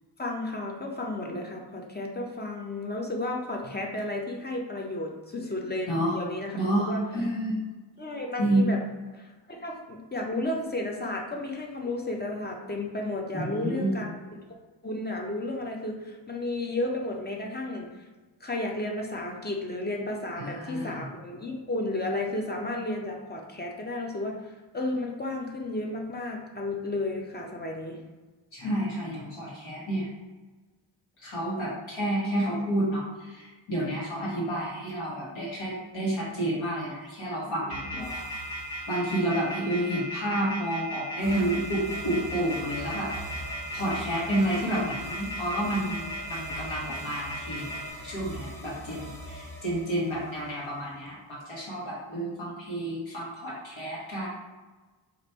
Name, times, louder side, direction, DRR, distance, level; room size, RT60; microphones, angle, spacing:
voice 1, 0.2-7.0 8.0-8.8 9.1-14.4 14.8-17.9 18.4-28.0 37.5-38.0, left 2 dB, 20° left, 0 dB, 0.5 m, -33 dB
voice 2, 6.5-7.6 8.4-8.7 13.3-14.0 20.4-21.1 28.5-30.1 31.2-38.5 38.9-43.4 43.7-47.7 48.0-54.3, right 1 dB, 75° left, -6 dB, 1.2 m, -30 dB
sound 1, 37.7-47.8, equal, 50° left, 1.2 m, -36 dB
sound 2, 37.7-39.6 41.2-50.9, equal, 5° left, 0.8 m, -43 dB
3.0 x 2.5 x 4.2 m, 1.3 s
wide cardioid pair, 125°, 47 cm